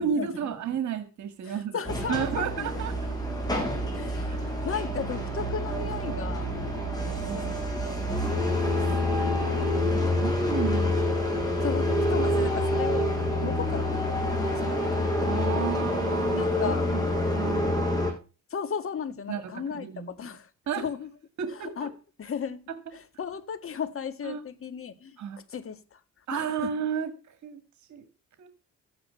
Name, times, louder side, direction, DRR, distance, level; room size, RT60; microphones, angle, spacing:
voice 1, 0.0-1.8 2.1-3.1 4.3-4.8 7.1-7.4 8.1-9.4 9.9-11.7 13.4-13.5 15.2-18.1 19.3-20.1 20.7-20.9 21.4-21.9 24.2-24.4 25.2-25.4 26.3-27.6 27.9-28.0 28.4-28.5, right 8 dB, 70° right, 1.9 m, -33 dB
voice 2, 1.5-2.9 3.9-6.5 7.3-8.9 11.6-15.8 16.4-16.9 18.5-20.5 20.8-21.1 21.5-21.9 22.2-22.6 22.9-25.2 25.5-26.0 26.3-26.7, left 7 dB, 45° left, 1.9 m, -36 dB
sound 1, 1.9-18.1, left 1 dB, 15° left, 6.0 m, -27 dB
14.5 x 9.6 x 5.7 m
cardioid pair, 90°, 30 cm